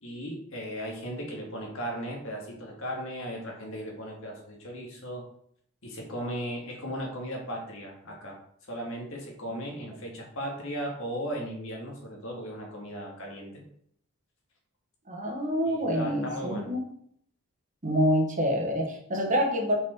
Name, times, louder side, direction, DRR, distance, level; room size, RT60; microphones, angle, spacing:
voice 1, 0.0-5.2 5.8-8.4 8.7-13.6 15.7-16.7, equal, 60° left, 0 dB, 1.8 m, -36 dB
voice 2, 15.1-16.8 17.8-19.7, equal, 35° right, 1 dB, 1.2 m, -26 dB
5.5 x 5.1 x 4.3 m, 0.67 s
head